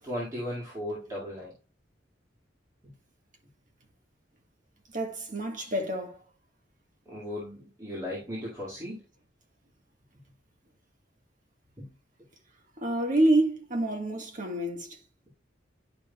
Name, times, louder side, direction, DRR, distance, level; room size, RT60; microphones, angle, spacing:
voice 1, 0.0-1.5 2.8-2.9 7.1-9.0 11.8-11.9, left 1 dB, 20° right, 2.0 m, -36 dB
voice 2, 4.9-6.2 12.8-15.0, right 1 dB, 45° right, 1.5 m, -27 dB
10.5 x 5.4 x 2.3 m
head